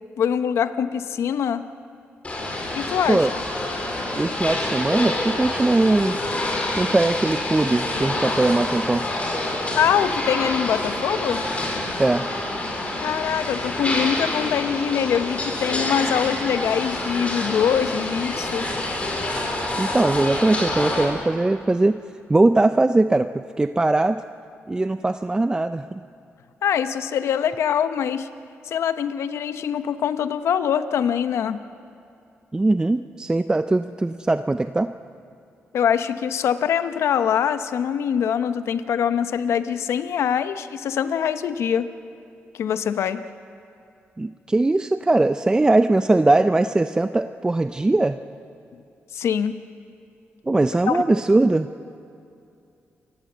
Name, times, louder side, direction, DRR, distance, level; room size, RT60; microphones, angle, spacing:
voice 1, 0.2-1.6 2.7-3.3 9.7-11.4 13.0-18.7 26.6-28.3 28.6-31.6 35.7-41.9 42.5-43.2 49.1-49.6 50.9-51.2, left 8 dB, 80° left, 11 dB, 0.9 m, -23 dB
sound 1, 2.2-21.1, left 1 dB, 30° left, 4.8 m, -27 dB
voice 2, 4.2-6.2 6.8-9.1 12.0-12.3 19.8-22.0 22.3-23.3 23.6-24.2 24.7-26.0 32.5-34.9 44.2-48.2 50.5-51.7, right 2 dB, 15° right, 10 dB, 0.5 m, -20 dB
28.5 x 16.5 x 7.9 m, 2.5 s
cardioid pair, 100°, 5 cm